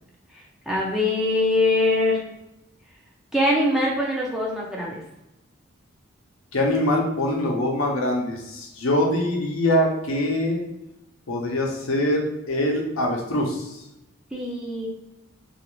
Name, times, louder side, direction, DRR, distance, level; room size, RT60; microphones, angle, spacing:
voice 1, 0.7-2.2 3.3-5.0 14.3-14.9, left 2 dB, ahead, -4 dB, 0.5 m, -22 dB
voice 2, 6.5-10.6 11.3-13.7, left 1 dB, 85° left, 0 dB, 0.7 m, -23 dB
2.6 x 2.4 x 3.0 m, 0.91 s
head